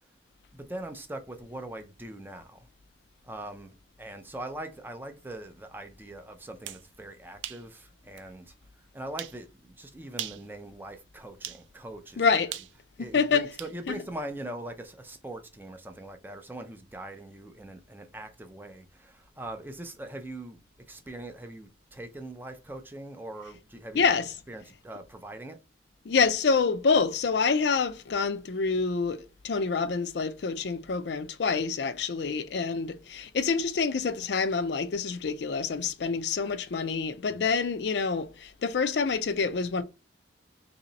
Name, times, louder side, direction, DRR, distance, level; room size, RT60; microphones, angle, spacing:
voice 1, 0.5-2.7 3.2-8.5 8.9-12.3 13.0-20.6 20.9-24.1 24.5-25.6 37.3-37.4, right 1 dB, 10° right, 0.4 m, -41 dB
sound 1, 6.5-6.9 7.4-7.7 8.2-8.3 9.2-9.4 10.1-10.5 11.4-11.6 12.5-13.8, right 12 dB, 90° right, 0.4 m, -39 dB
voice 2, 12.2-12.6 13.0-13.5 13.9-14.0 23.9-24.3 26.0-39.8, left 5 dB, 70° left, 0.4 m, -27 dB
3.0 x 2.8 x 3.9 m
head